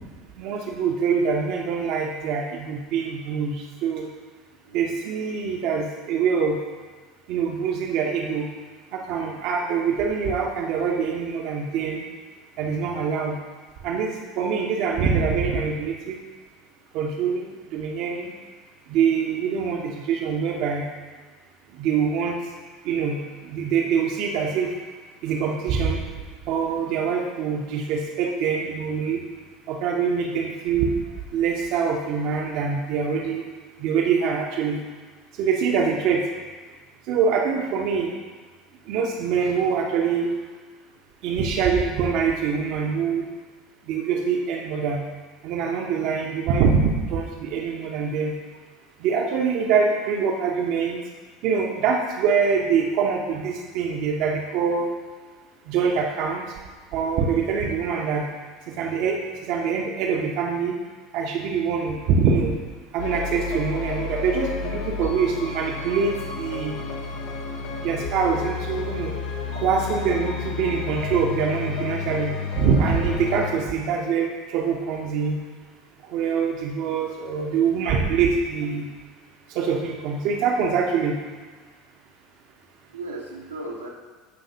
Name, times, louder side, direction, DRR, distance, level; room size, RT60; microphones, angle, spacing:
voice 1, 0.4-4.1 4.7-6.6 7.3-8.5 8.9-12.0 12.6-13.4 13.8-16.2 16.9-17.4 17.7-18.3 18.9-20.8 21.8-22.4 22.8-23.2 23.5-24.7 25.2-26.0 26.5-29.2 29.7-30.9 31.3-33.4 33.8-34.8 35.4-36.2 37.1-38.1 38.9-40.3 41.2-43.2 43.9-45.0 45.4-48.3 49.0-51.0 51.4-54.9 55.7-56.4 56.9-58.2 58.7-59.2 59.5-60.7 61.1-62.5 62.9-66.8 67.8-69.1 69.5-72.3 72.6-75.4 76.1-78.9 79.5-81.1, right 6 dB, 50° right, 0 dB, 0.9 m, -24 dB
voice 2, 4.6-5.0 21.7-21.9 28.8-28.9 31.1-31.2 66.8-66.9 82.9-83.9, right 2 dB, 80° right, -2 dB, 1.2 m, -37 dB
sound 1, 63.0-73.5, left 5 dB, 60° left, 1.0 m, -31 dB
15.5 x 5.6 x 2.8 m, 1.4 s
figure-of-eight pair, 70°, 0 cm